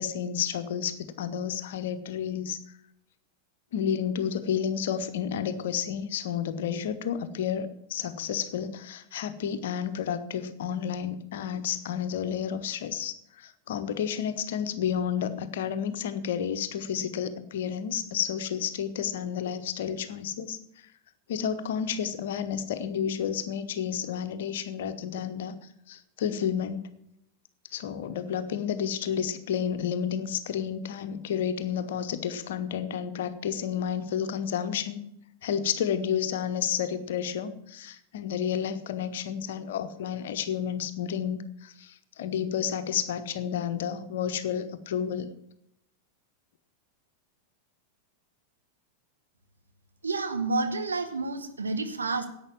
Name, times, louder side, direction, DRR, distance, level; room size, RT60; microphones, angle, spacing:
voice 1, 0.0-2.6 3.7-20.6 21.3-25.6 25.9-26.8 27.7-35.0 35.4-45.3, left 8 dB, 55° left, 11 dB, 1.1 m, -31 dB
voice 2, 50.0-52.3, right 3 dB, 75° right, 7 dB, 1.5 m, -29 dB
11.0 x 8.4 x 7.5 m, 0.79 s
figure-of-eight pair, 90°, 0 cm